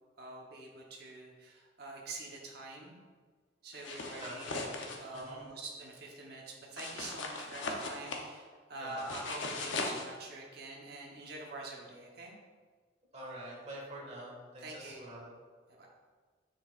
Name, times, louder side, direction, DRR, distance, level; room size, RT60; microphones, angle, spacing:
voice 1, 0.2-3.0 3.6-12.3 14.6-15.2 15.8-15.9, right 2 dB, 55° right, -2 dB, 1.0 m, -46 dB
sound 1, 3.7-5.2 6.8-8.3 9.0-10.0, left 3 dB, 80° left, 0.8 m, -39 dB
voice 2, 5.1-5.4 8.8-9.1 13.1-15.3, right 1 dB, 35° right, -4 dB, 1.8 m, -46 dB
6.8 x 5.6 x 2.5 m, 1.5 s
head